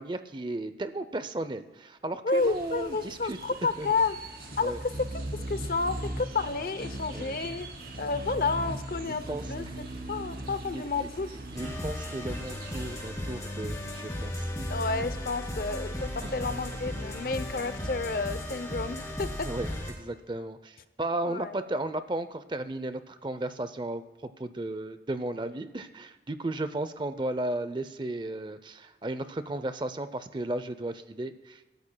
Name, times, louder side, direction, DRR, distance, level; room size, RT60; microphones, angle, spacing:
voice 1, 0.0-3.4 3.8-3.9 4.6-4.8 7.1-7.4 9.1-9.8 10.7-11.1 11.5-14.7 16.2-16.3 19.4-24.0 24.4-31.7, right 2 dB, 25° right, 11 dB, 0.5 m, -35 dB
voice 2, 2.2-4.2 4.6-4.7 5.3-7.7 8.0-9.6 10.1-11.3 14.7-19.5 21.2-21.5, left 3 dB, 55° left, 12 dB, 0.7 m, -30 dB
sound 1, 2.4-13.1, right 1 dB, 55° right, 2.9 m, -39 dB
sound 2, 11.5-19.9, left 1 dB, 20° left, 2.7 m, -35 dB
26.5 x 13.0 x 2.3 m, 1.2 s
head